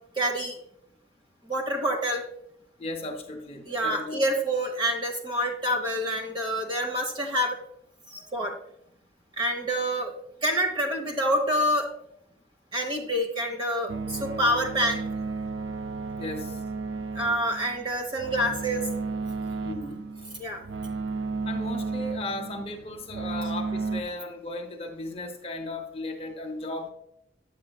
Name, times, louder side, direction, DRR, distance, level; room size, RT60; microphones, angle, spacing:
voice 1, 0.1-0.6 1.4-2.2 3.6-7.6 8.1-8.5 9.4-10.1 10.4-11.9 12.7-15.0 17.1-18.9 20.4-20.6, equal, 25° right, 3 dB, 1.1 m, -27 dB
voice 2, 2.8-4.3 16.2-16.6 19.6-20.0 21.4-26.9, left 2 dB, 30° left, 3 dB, 0.8 m, -36 dB
sound 1, 13.9-24.0, right 4 dB, 85° right, 0.5 m, -33 dB
8.6 x 7.4 x 2.3 m, 0.74 s
head